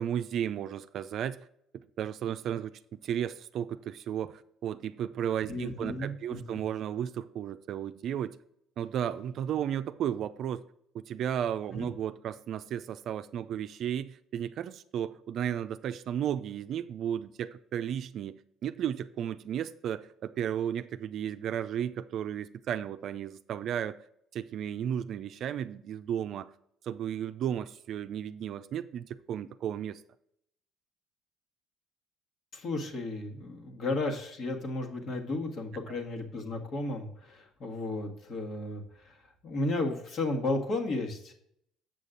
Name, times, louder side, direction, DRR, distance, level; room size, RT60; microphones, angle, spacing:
voice 1, 0.0-1.5 2.0-8.4 8.8-10.6 10.9-24.0 24.3-26.5 26.8-30.0 35.9-36.0, right 9 dB, 60° right, 0.4 m, -34 dB
voice 2, 5.5-6.4 11.7-11.9 32.5-39.2 39.4-41.3, left 2 dB, 55° left, 1.8 m, -33 dB
7.6 x 6.5 x 3.9 m
supercardioid pair, 80°, 0 cm